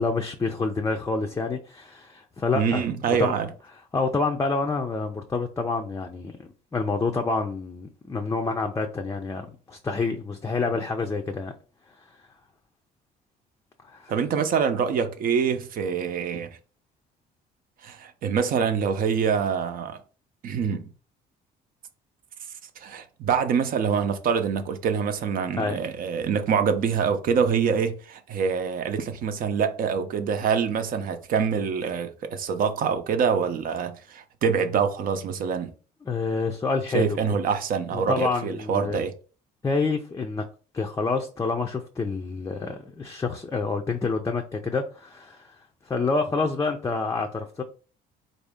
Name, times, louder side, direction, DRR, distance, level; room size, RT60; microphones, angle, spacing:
voice 1, 0.0-3.3 3.9-11.5 12.0-12.1 13.8-14.1 25.5-25.8 36.1-37.2 37.9-39.0 39.6-40.4 40.7-45.6 45.9-47.6, left 4 dB, 20° left, 0.4 m, -28 dB
voice 2, 2.5-3.5 14.1-16.5 17.8-20.0 20.4-20.9 22.8-35.7 36.9-39.1, right 6 dB, 55° right, 0.6 m, -25 dB
4.0 x 2.7 x 3.5 m
cardioid pair, 110°, 17 cm